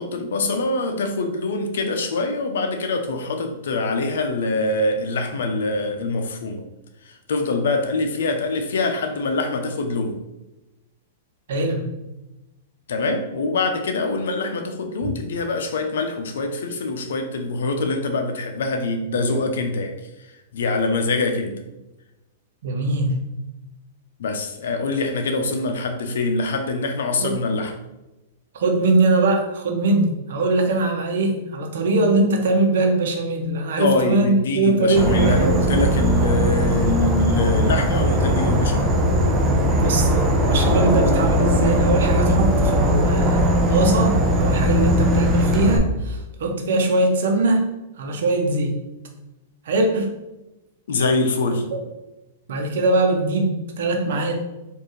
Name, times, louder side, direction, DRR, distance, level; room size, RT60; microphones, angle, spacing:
voice 1, 0.0-6.6 7.0-10.2 12.9-20.0 20.5-21.6 24.2-27.7 33.8-38.9 50.9-51.7, left 3 dB, 80° left, 5 dB, 0.7 m, -24 dB
voice 2, 11.5-11.8 15.0-15.1 22.6-23.2 27.2-27.4 28.5-35.4 39.7-47.7 48.0-48.8 49.6-50.1 51.4-51.8 52.5-54.3, right 2 dB, 70° right, 2 dB, 0.9 m, -21 dB
Insect / Frog, 35.0-45.8, equal, 20° right, 0.6 m, -19 dB
4.6 x 2.7 x 3.1 m, 0.99 s
hypercardioid pair, 145°, 0 cm